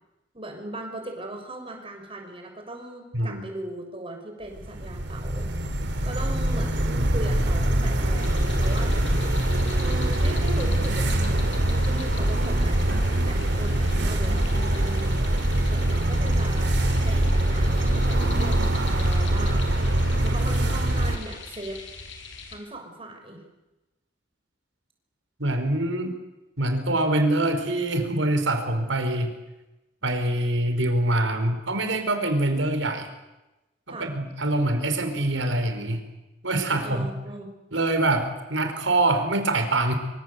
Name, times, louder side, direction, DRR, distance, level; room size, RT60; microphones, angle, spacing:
voice 1, 0.3-5.5 6.0-8.9 9.8-15.2 15.7-21.8 22.5-23.4 33.9-34.1 36.8-37.6, right 1 dB, 30° right, 3 dB, 6.3 m, -38 dB
sound 1, 4.6-21.2, right 1 dB, 65° right, 3.5 m, -23 dB
sound 2, 8.1-22.6, left 4 dB, 85° left, 5.8 m, -42 dB
voice 2, 25.4-26.1 26.6-29.3 30.0-33.1 34.0-36.0 36.4-37.1 37.7-39.9, right 2 dB, 90° right, 6 dB, 4.9 m, -24 dB
25.0 x 25.0 x 8.2 m, 1.0 s
head